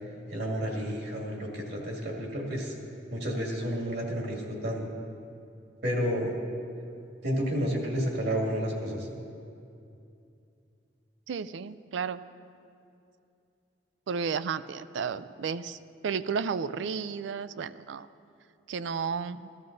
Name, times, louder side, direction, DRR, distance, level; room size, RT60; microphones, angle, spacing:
voice 1, 0.3-2.7 3.1-4.9 5.8-6.3 7.2-9.1, equal, 65° right, 0 dB, 2.1 m, -31 dB
voice 2, 11.3-12.2 14.1-15.8 16.0-18.1 18.7-19.5, right 6 dB, 90° right, 14 dB, 0.4 m, -32 dB
14.5 x 12.5 x 3.9 m, 2.6 s
head